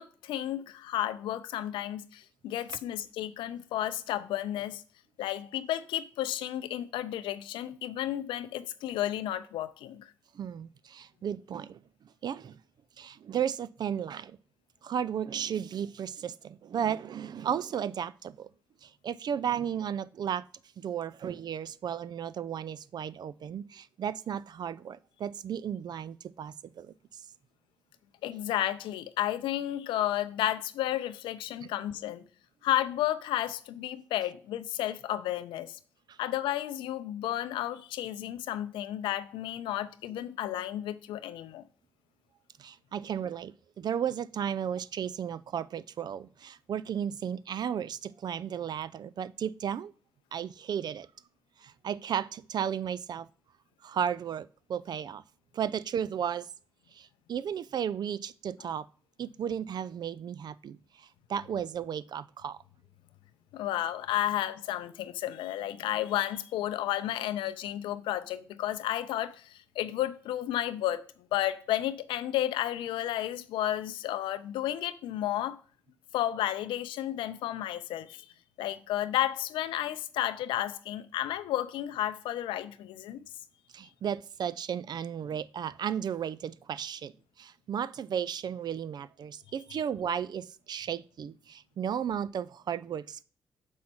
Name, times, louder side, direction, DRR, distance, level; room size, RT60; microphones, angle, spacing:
voice 1, 0.0-4.8 5.2-10.1 28.2-32.2 32.6-35.8 36.2-41.7 63.5-71.0 71.3-75.6 76.1-78.3 78.6-83.2, left 12 dB, 75° left, 0.5 m, -32 dB
voice 2, 10.3-11.8 12.2-12.6 13.0-14.4 14.8-18.5 18.8-20.5 20.8-27.2 31.6-31.7 36.1-36.2 42.6-49.9 50.3-51.1 51.6-53.3 53.8-55.2 55.5-56.5 56.9-58.9 59.2-62.6 83.7-87.1 87.4-93.2, right 8 dB, 55° right, 0.4 m, -34 dB
6.4 x 5.4 x 4.3 m
hypercardioid pair, 40°, 8 cm